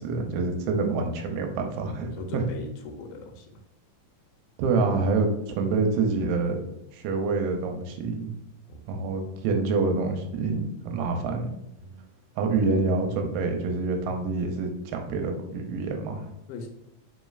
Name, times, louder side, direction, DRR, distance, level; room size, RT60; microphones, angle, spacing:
voice 1, 0.0-2.4 4.6-6.6 6.9-8.3 8.9-11.5 12.4-16.3, right 4 dB, 80° right, 3 dB, 2.2 m, -27 dB
voice 2, 2.1-3.6 8.7-8.8 11.8-12.0 16.5-16.7, left 3 dB, 85° left, 4 dB, 2.3 m, -39 dB
5.0 x 3.1 x 2.3 m, 0.81 s
omnidirectional pair, 4.0 m